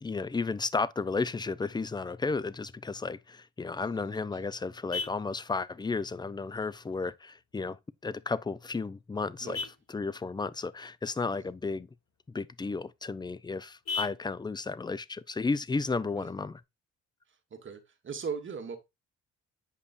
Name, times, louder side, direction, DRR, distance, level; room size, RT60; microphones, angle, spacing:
voice 1, 0.0-7.8 8.0-9.6 9.9-11.9 12.3-16.6, left 4 dB, 15° left, 0.5 m, -33 dB
Vehicle horn car horn honking, 3.6-16.6, left 4 dB, 60° left, 2.8 m, -45 dB
voice 2, 3.7-4.5 9.4-9.7 11.3-11.4 16.2-16.3 17.5-18.8, right 6 dB, 40° right, 1.6 m, -40 dB
8.4 x 5.2 x 2.5 m
cardioid pair, 90°, 30 cm